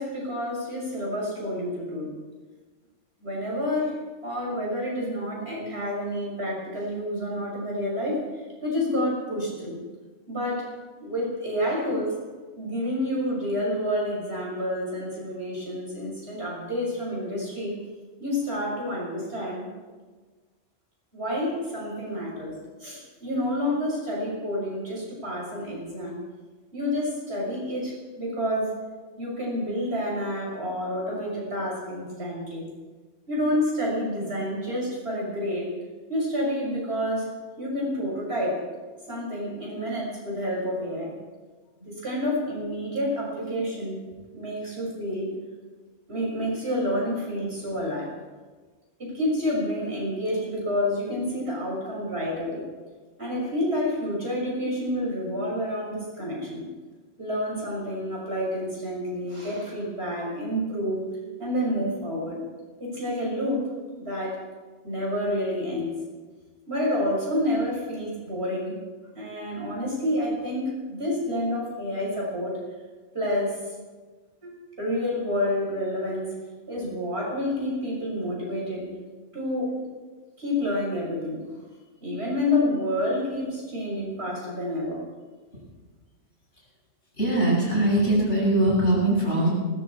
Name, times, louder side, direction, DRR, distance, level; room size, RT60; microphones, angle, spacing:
voice 1, 0.0-2.2 3.2-9.8 10.3-10.7 11.0-12.2 12.6-17.8 18.2-19.7 21.1-22.5 22.8-26.2 26.7-28.8 29.2-32.7 33.3-35.7 36.1-38.6 39.1-41.2 41.8-44.0 44.3-45.3 46.1-48.1 49.0-52.7 53.2-56.7 57.2-61.0 61.4-62.4 62.8-64.5 64.8-66.0 66.7-68.8 69.1-72.6 73.1-73.7 74.4-74.5 74.8-76.4 76.7-78.9 79.3-79.8 80.4-81.4 82.0-85.0, left 1 dB, 55° right, -3 dB, 6.7 m, -29 dB
voice 2, 87.2-89.5, right 1 dB, 70° left, -5 dB, 8.0 m, -21 dB
19.0 x 17.0 x 4.4 m, 1.3 s
omnidirectional pair, 1.3 m